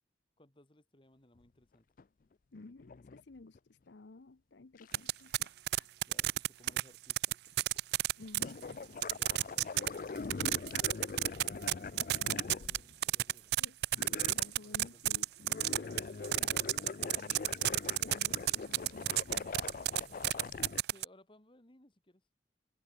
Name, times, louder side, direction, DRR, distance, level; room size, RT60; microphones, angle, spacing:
voice 1, 0.4-1.9 6.1-7.4 8.8-10.8 11.6-13.5 14.6-15.1 20.9-22.2, left 1 dB, 30° left, 1.9 m, -63 dB
sound 1, 2.0-2.1 2.6-3.6 4.8-5.2 6.7-6.8 7.5-7.8 8.2-13.3 13.9-15.1 15.4-20.8, left 4 dB, 50° left, 0.4 m, -43 dB
voice 2, 2.5-5.9 8.2-8.7 13.6-15.3 15.6-16.0 17.6-19.6, left 3 dB, 80° left, 0.8 m, -54 dB
sound 2, 4.9-6.8 7.1-8.4 9.0-9.9 10.2-12.8 13.0-21.0, right 14 dB, 60° right, 0.3 m, -29 dB
open air
head